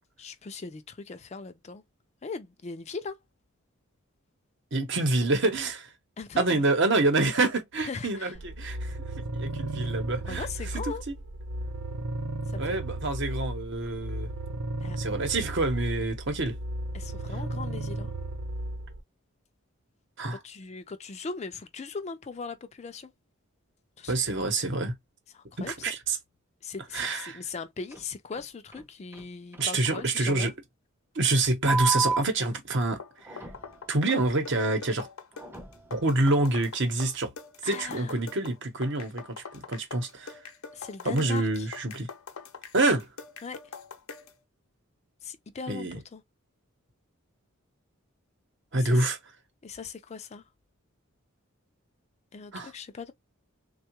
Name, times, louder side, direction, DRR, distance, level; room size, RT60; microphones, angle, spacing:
voice 1, 0.2-1.8 2.2-3.2 6.2-6.6 7.8-8.3 10.2-11.0 12.5-12.8 14.8-15.0 16.9-18.1 20.4-23.1 24.0-24.3 25.3-25.7 26.6-30.5 37.6-38.2 40.7-41.7 43.4-43.6 45.2-46.2 48.7-49.1 49.6-50.4 52.3-53.1, left 4 dB, 30° left, 0.4 m, -39 dB
voice 2, 4.7-5.9 6.4-9.0 9.3-10.5 12.6-14.3 15.0-16.6 20.2-20.4 24.1-25.0 25.6-26.2 26.9-27.4 29.6-30.5 31.1-33.0 33.3-33.4 33.9-35.1 35.9-37.3 37.6-39.2 39.5-40.4 41.0-42.1 42.7-43.1 45.7-46.0 48.7-49.2 52.5-52.7, right 2 dB, 55° right, 0.9 m, -27 dB
sound 1, 8.3-19.0, right 1 dB, 80° right, 0.7 m, -35 dB
sound 2, 27.9-28.0 28.3-28.4 28.7-28.8 29.1-29.2 29.5-29.6 29.9-30.0 30.3-30.4 31.7-32.2 33.3-33.6 34.2-34.3 35.4-35.8, right 4 dB, 10° right, 0.6 m, -29 dB
sound 3, 32.8-44.4, left 5 dB, 75° left, 0.7 m, -44 dB
3.6 x 2.3 x 2.9 m
head